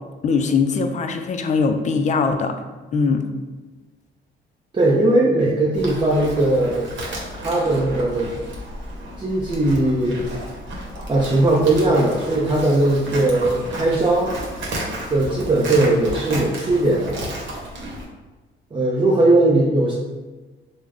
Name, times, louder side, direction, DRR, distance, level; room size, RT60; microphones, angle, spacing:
voice 1, 0.2-2.5 2.9-3.2, left 4 dB, 40° left, 7 dB, 0.4 m, -21 dB
voice 2, 4.7-6.9 7.4-8.3 9.2-10.2 11.1-14.3 15.1-17.2 18.7-19.9, right 2 dB, 25° right, -5 dB, 0.6 m, -19 dB
Livestock farm animals working animals, 5.7-18.1, right 1 dB, 70° right, 0.9 m, -33 dB
3.4 x 2.1 x 3.5 m, 1.2 s
cardioid pair, 90°, 20 cm